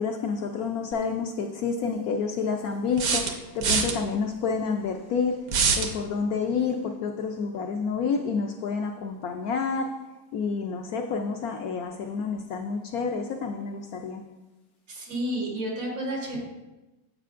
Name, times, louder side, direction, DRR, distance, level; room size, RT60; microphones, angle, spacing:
voice 1, 0.0-5.4 5.8-9.9 10.3-14.2, left 5 dB, 70° left, 4 dB, 0.9 m, -29 dB
sound 1, 0.9-1.0 3.0-4.0 5.5-5.9, right 5 dB, 60° right, 1.1 m, -24 dB
voice 2, 14.9-16.4, right 1 dB, 85° right, -2 dB, 2.7 m, -31 dB
10.0 x 7.5 x 2.5 m, 1.1 s
omnidirectional pair, 1.9 m